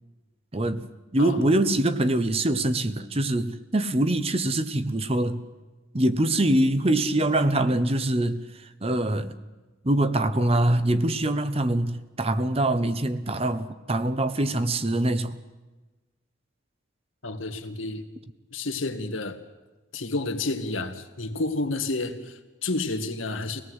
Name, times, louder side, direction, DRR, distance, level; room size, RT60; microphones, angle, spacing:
voice 1, 0.5-0.9 1.1-5.4 5.9-9.4 9.8-15.4, right 1 dB, 30° right, 1.0 m, -24 dB
voice 2, 1.2-1.5 17.2-18.1 18.5-19.4 19.9-23.6, left 2 dB, 90° left, 2.0 m, -30 dB
25.0 x 18.5 x 8.1 m
head